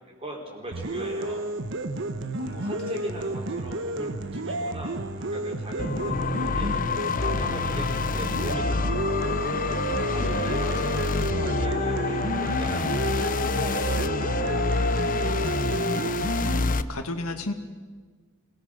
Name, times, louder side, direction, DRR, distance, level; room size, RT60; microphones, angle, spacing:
voice 1, 0.0-1.5 2.6-6.8 7.2-9.3 10.1-14.6 14.9-15.4, right 1 dB, 25° right, 0 dB, 4.6 m, -39 dB
sound 1, 0.7-16.7, right 2 dB, 60° right, 1.1 m, -31 dB
voice 2, 2.4-3.1 10.2-11.0 16.6-17.5, left 2 dB, 90° left, 6 dB, 2.1 m, -36 dB
sound 2, 5.8-16.8, left 3 dB, 40° left, 0.7 m, -27 dB
26.5 x 19.0 x 6.6 m, 1.4 s
head